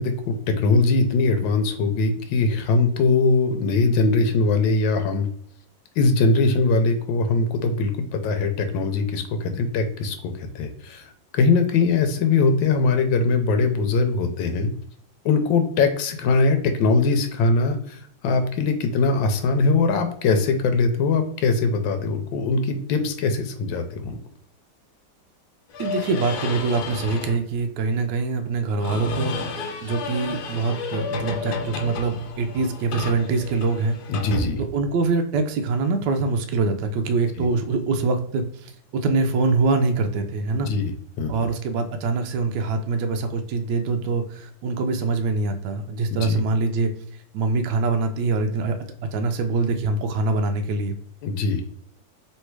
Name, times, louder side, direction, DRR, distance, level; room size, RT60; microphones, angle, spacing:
voice 1, 0.0-5.3 6.0-11.0 11.3-14.7 15.2-18.0 18.2-24.2 34.1-34.6 37.4-37.5 40.5-40.9 41.2-41.3 46.1-46.4 51.2-51.6, left 3 dB, 90° left, 7 dB, 1.3 m, -21 dB
sound 1, 25.7-27.4 28.8-35.1, left 2 dB, 70° left, 1.1 m, -31 dB
voice 2, 25.8-29.3 29.8-34.0 34.6-40.7 41.3-46.9 47.3-48.7 49.1-50.9, right 3 dB, 75° right, 5 dB, 1.2 m, -24 dB
3.2 x 3.1 x 4.5 m, 0.64 s
omnidirectional pair, 2.1 m